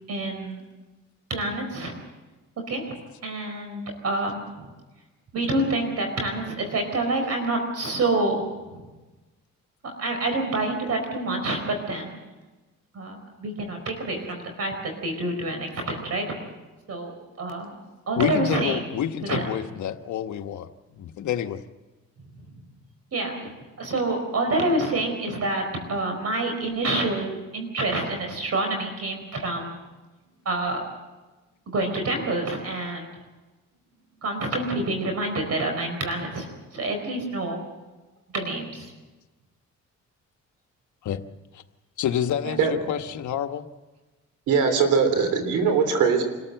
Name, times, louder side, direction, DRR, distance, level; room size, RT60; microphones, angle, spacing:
voice 1, 0.1-0.6 1.3-2.0 2.7-2.9 3.2-4.7 5.3-8.9 10.0-12.2 12.9-16.3 16.9-17.8 18.1-18.8 19.2-19.5 22.2-22.4 23.1-25.6 25.9-29.8 30.4-30.8 31.7-33.1 34.2-37.6 38.3-38.9 42.4-42.9 45.1-45.4, right 2 dB, 55° right, 4 dB, 4.4 m, -27 dB
voice 2, 18.2-21.6 41.0-41.2 41.5-41.6 42.0-43.7, left 9 dB, 75° left, 7 dB, 1.3 m, -28 dB
voice 3, 44.5-46.2, right 5 dB, 85° right, 8 dB, 3.4 m, -21 dB
25.5 x 14.0 x 7.8 m, 1.2 s
cardioid pair, 90°, 30 cm